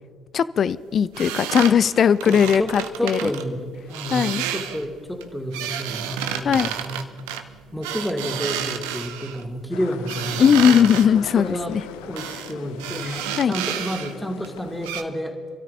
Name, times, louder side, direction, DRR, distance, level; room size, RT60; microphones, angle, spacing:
voice 1, 0.3-3.3 4.1-4.4 6.4-6.7 10.4-11.8 13.0-13.6, left 7 dB, 50° left, 16 dB, 0.4 m, -19 dB
sound 1, 1.1-3.4 3.9-4.8 5.2-9.4 10.1-11.1 12.2-12.5 12.8-14.1 14.4-14.5 14.8-15.0, right 10 dB, 75° right, 0.8 m, -30 dB
voice 2, 2.2-7.0 7.7-15.4, equal, 5° left, 0 dB, 2.7 m, -30 dB
sound 2, 9.7-14.9, left 9 dB, 75° left, 0.7 m, -40 dB
27.5 x 13.0 x 2.8 m, 2.1 s
hypercardioid pair, 50°, 0 cm